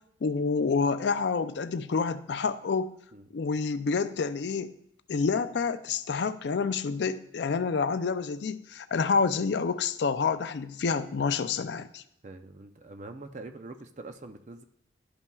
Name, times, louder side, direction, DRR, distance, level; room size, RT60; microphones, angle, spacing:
voice 1, 0.2-2.9 3.3-4.7 5.1-12.0, left 5 dB, 65° left, 12 dB, 0.4 m, -28 dB
voice 2, 12.2-14.6, right 2 dB, 40° right, 7 dB, 0.5 m, -44 dB
12.0 x 5.5 x 2.3 m, 0.74 s
head